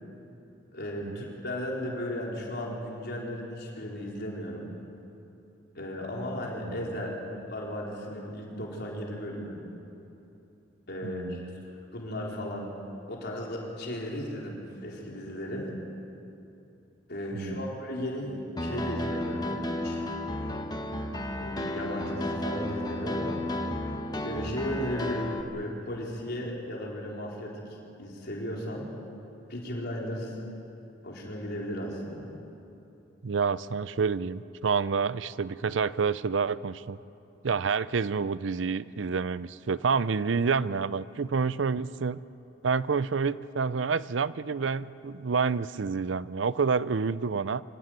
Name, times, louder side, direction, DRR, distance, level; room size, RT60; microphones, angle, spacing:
voice 1, 0.7-4.7 5.7-9.6 10.9-12.7 13.1-15.7 17.1-20.1 21.4-23.4 24.2-27.6 28.0-28.9 29.5-30.4 31.0-32.3, equal, 60° left, -2 dB, 4.3 m, -35 dB
voice 2, 11.0-11.6 17.3-17.7 33.2-37.0 37.4-42.2 42.6-47.6, right 5 dB, 70° right, 17 dB, 0.5 m, -28 dB
Piano, 18.6-25.4, left 1 dB, 20° left, 1.3 m, -33 dB
25.0 x 15.5 x 9.4 m, 2.8 s
head